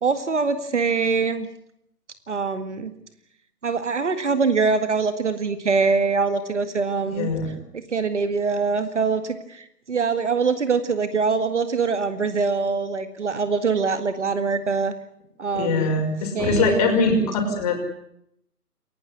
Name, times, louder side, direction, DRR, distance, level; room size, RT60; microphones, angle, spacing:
voice 1, 0.0-1.5 2.3-2.9 3.6-7.3 7.7-14.9 15.4-15.9 16.3-17.0, right 4 dB, 45° right, 11 dB, 2.0 m, -23 dB
voice 2, 7.1-7.5 15.5-17.8, left 3 dB, 25° left, 3 dB, 5.9 m, -22 dB
29.0 x 16.0 x 9.8 m, 0.75 s
figure-of-eight pair, 145°, 47 cm